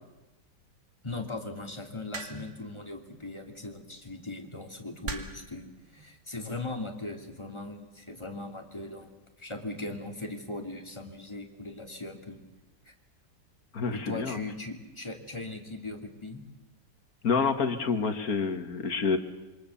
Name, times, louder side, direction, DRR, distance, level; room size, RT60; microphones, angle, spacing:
voice 1, 1.0-9.1 9.4-12.4 12.8-12.9 13.9-16.4, left 2 dB, 15° left, 2 dB, 3.0 m, -39 dB
sound 1, 2.1-2.6 3.9-4.1 5.0-5.5 6.5-6.8, right 3 dB, 55° right, 2.7 m, -39 dB
voice 2, 13.7-14.4 17.2-19.2, left 5 dB, 60° left, 8 dB, 2.2 m, -28 dB
27.0 x 24.5 x 7.2 m, 1.1 s
omnidirectional pair, 1.8 m